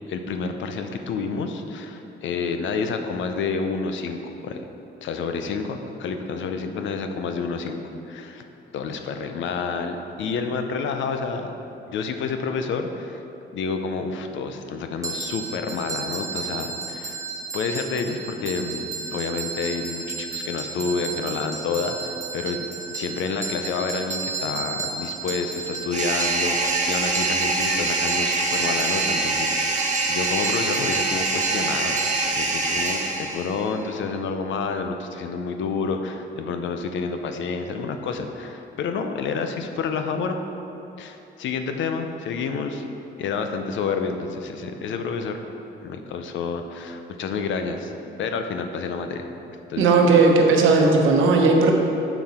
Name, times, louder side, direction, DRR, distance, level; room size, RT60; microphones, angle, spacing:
voice 1, 0.1-4.6 5.0-7.8 8.1-8.4 8.7-11.5 11.9-13.2 13.5-17.2 17.5-22.7 22.9-32.0 32.3-40.4 41.0-42.9 43.2-45.4 45.8-47.9 48.2-49.2 49.7-49.9, left 5 dB, 75° left, 6 dB, 0.6 m, -29 dB
sound 1, 15.0-33.8, right 4 dB, 15° right, 1.2 m, -33 dB
sound 2, 25.9-33.6, right 3 dB, 40° right, 0.9 m, -24 dB
voice 2, 49.8-51.7, right 3 dB, 85° right, 1 dB, 1.0 m, -16 dB
7.0 x 5.8 x 4.2 m, 2.9 s
cardioid pair, 90°, 20 cm